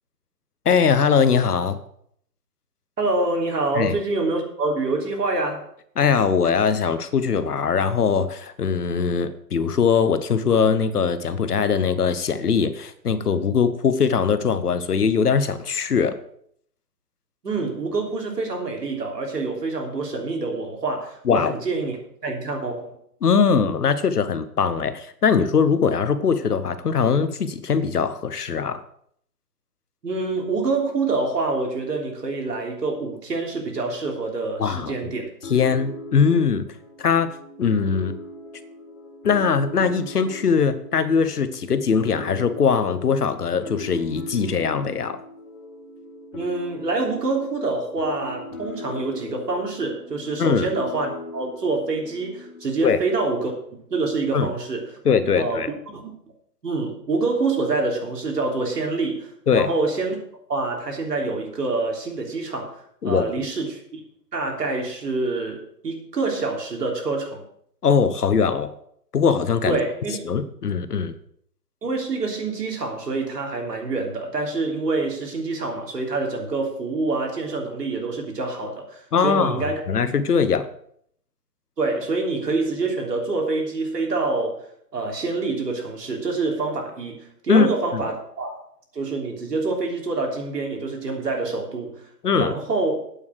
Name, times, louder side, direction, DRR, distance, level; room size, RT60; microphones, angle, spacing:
voice 1, 0.6-1.8 3.7-3.9 6.0-16.2 21.3-21.5 23.2-28.8 34.6-34.9 35.5-36.7 37.0-37.3 37.6-38.1 39.2-45.2 50.4-50.7 52.8-53.0 54.3-54.5 55.0-55.7 59.5-59.7 63.0-63.4 67.8-68.7 69.1-69.8 70.3-71.1 79.1-80.7 87.5-88.0 92.2-92.5, left 6 dB, 65° left, 12 dB, 1.1 m, -21 dB
voice 2, 3.0-5.6 17.4-22.0 22.2-23.0 30.0-35.3 46.3-55.0 55.3-56.1 56.6-60.2 60.5-64.0 64.3-67.4 69.7-70.2 71.8-80.1 81.8-84.7 84.9-88.6 88.9-92.0 92.3-93.0, right 3 dB, 75° right, 1 dB, 3.4 m, -26 dB
sound 1, 35.4-52.9, left 1 dB, 50° left, 1.8 m, -39 dB
8.8 x 7.5 x 6.5 m, 0.67 s
hypercardioid pair, 170°, 49 cm